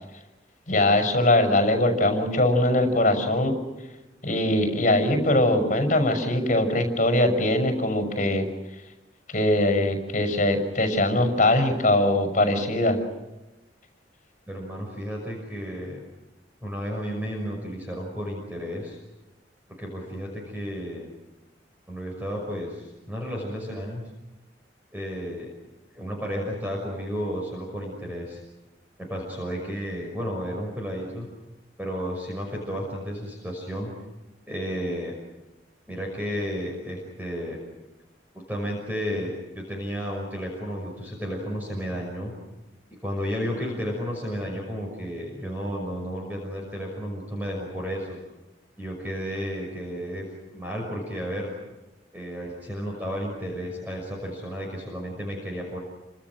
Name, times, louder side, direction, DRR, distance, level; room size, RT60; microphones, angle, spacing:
voice 1, 0.7-3.6 4.2-8.5 9.3-13.0, left 1 dB, 40° left, 5 dB, 6.2 m, -21 dB
voice 2, 14.5-16.0 16.6-19.0 19.8-21.1 21.9-24.1 24.9-25.5 25.9-28.4 29.0-31.3 31.8-33.9 34.5-35.1 35.9-37.6 38.5-42.3 43.0-48.2 48.8-50.3 50.5-51.5 52.1-55.8, equal, 10° right, -1 dB, 5.8 m, -32 dB
29.0 x 26.0 x 6.3 m, 1.0 s
head